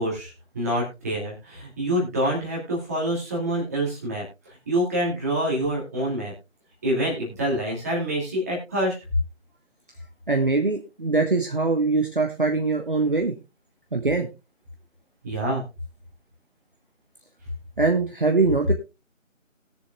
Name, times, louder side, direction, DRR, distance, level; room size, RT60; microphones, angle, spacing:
voice 1, 0.0-4.2 4.7-6.3 6.8-9.0 15.2-15.6, right 1 dB, 10° right, -4 dB, 2.4 m, -26 dB
voice 2, 10.3-13.3 13.9-14.3 17.8-18.7, right 3 dB, 40° right, 3 dB, 1.2 m, -22 dB
20.0 x 6.9 x 2.3 m, 0.27 s
figure-of-eight pair, 165°, 40 cm